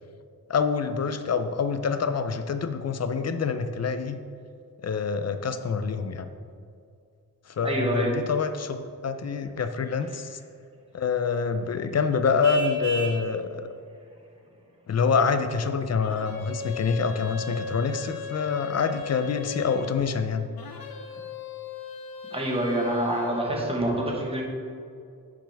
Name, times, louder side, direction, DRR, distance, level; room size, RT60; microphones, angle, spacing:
voice 1, 0.5-4.2 4.8-6.3 7.6-8.8 9.0-10.4 10.9-13.6 14.9-20.5, left 5 dB, 45° left, 9 dB, 0.4 m, -26 dB
voice 2, 7.6-8.3 22.3-24.4, right 1 dB, 15° right, -1 dB, 1.2 m, -26 dB
Vehicle horn car horn honking, 12.4-13.3, right 2 dB, 55° right, 0.7 m, -33 dB
sound 1, 16.0-20.0 20.6-23.6, left 6 dB, 80° left, 0.9 m, -38 dB
10.0 x 6.0 x 3.4 m, 2.4 s
wide cardioid pair, 165°, 36 cm